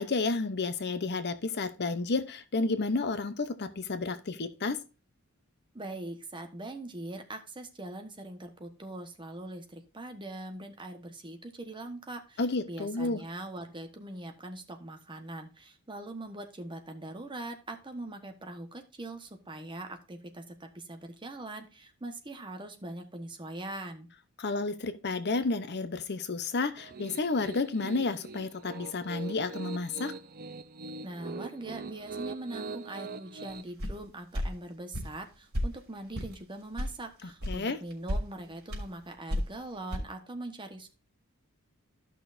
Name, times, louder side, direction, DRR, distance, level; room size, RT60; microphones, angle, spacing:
voice 1, 0.0-4.8 12.4-13.2 24.4-30.1 37.2-37.8, left 3 dB, 50° left, 0.8 m, -31 dB
voice 2, 5.7-12.4 12.7-24.1 31.0-40.9, right 2 dB, 25° right, 1.2 m, -42 dB
Piano, 26.8-33.6, right 3 dB, 45° right, 0.7 m, -42 dB
sound 1, 33.8-34.0 34.3-34.5 34.9-35.1 35.5-35.7 36.1-36.3 36.8-36.9 37.4-37.6 37.9-38.2 38.7-38.9 39.3-39.6 39.9-40.0, equal, 75° right, 3.5 m, -31 dB
13.5 x 6.0 x 2.6 m
head